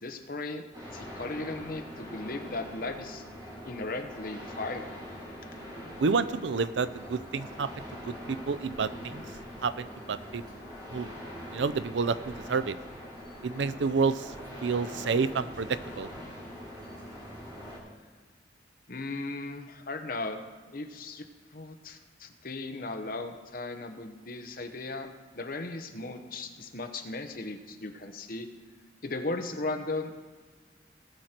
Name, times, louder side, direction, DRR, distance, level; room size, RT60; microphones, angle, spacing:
voice 1, 0.0-0.6 0.9-3.2 3.6-4.9 18.9-20.5 20.7-21.3 21.5-28.5 29.0-30.2, left 2 dB, 50° left, 6 dB, 1.0 m, -37 dB
sound 1, 0.7-17.8, equal, 25° right, 3.0 m, -43 dB
voice 2, 6.0-7.7 8.0-9.2 9.6-10.4 10.9-11.1 11.5-12.8 13.4-14.3 14.6-16.1, right 5 dB, 75° right, 14 dB, 0.5 m, -29 dB
18.5 x 6.5 x 4.5 m, 1.5 s
head